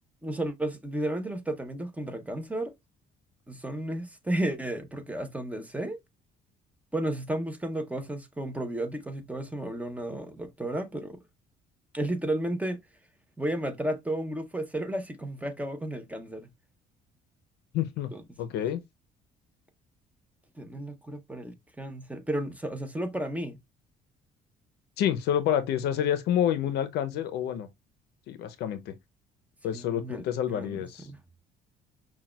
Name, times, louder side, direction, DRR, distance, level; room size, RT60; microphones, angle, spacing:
voice 1, 0.2-2.7 3.5-6.0 6.9-11.2 11.9-12.8 13.4-16.5 18.1-18.2 20.6-23.6 29.7-30.2 30.5-31.2, right 1 dB, 10° right, 0.7 m, -33 dB
voice 2, 17.7-18.1 18.4-18.8 25.0-27.7 28.3-28.9 29.6-31.1, left 10 dB, 80° left, 0.6 m, -28 dB
5.8 x 2.3 x 2.3 m
cardioid pair, 110°, 17 cm